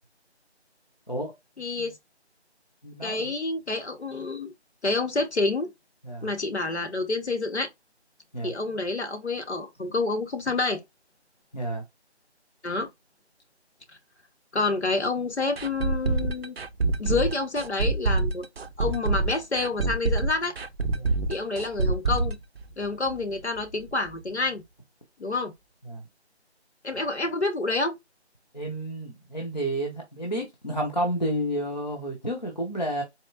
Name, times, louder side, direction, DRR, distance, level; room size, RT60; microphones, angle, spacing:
voice 1, 1.6-1.9 3.0-4.5 4.8-5.7 6.2-7.7 8.4-10.8 12.6-12.9 14.5-16.5 17.0-18.5 18.8-20.5 21.3-22.4 22.8-24.6 25.2-25.5 26.8-27.9, left 3 dB, 75° left, 1.1 m, -28 dB
voice 2, 2.8-3.3 6.0-6.3 8.3-8.5 11.5-11.8 20.9-21.1 25.9-26.0 28.5-33.0, right 1 dB, 40° left, 0.7 m, -31 dB
sound 1, 15.6-23.3 23.6-23.7 24.1-24.2, right 3 dB, 65° right, 0.5 m, -26 dB
4.2 x 2.9 x 2.5 m
figure-of-eight pair, 175°, 34 cm